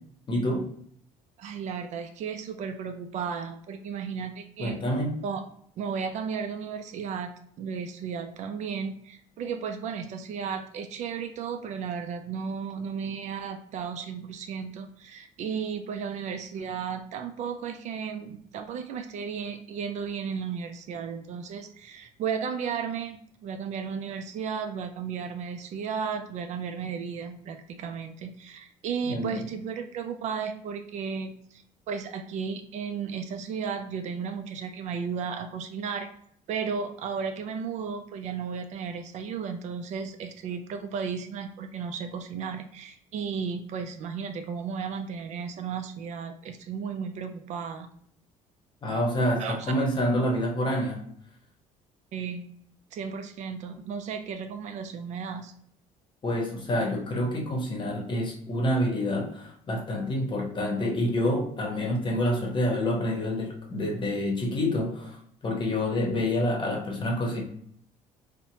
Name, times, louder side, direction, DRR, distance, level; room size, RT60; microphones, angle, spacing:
voice 1, 0.3-0.7 4.6-5.1 29.0-29.4 48.8-51.0 56.2-65.2 65.4-67.4, left 1 dB, 35° left, 0 dB, 0.9 m, -27 dB
voice 2, 1.4-4.8 5.2-5.4 5.8-7.3 7.6-36.1 36.5-47.9 49.4-49.7 52.1-52.5 52.9-55.5, right 6 dB, 55° right, 7 dB, 0.4 m, -34 dB
2.8 x 2.1 x 2.7 m, 0.66 s
supercardioid pair, 95°, 14 cm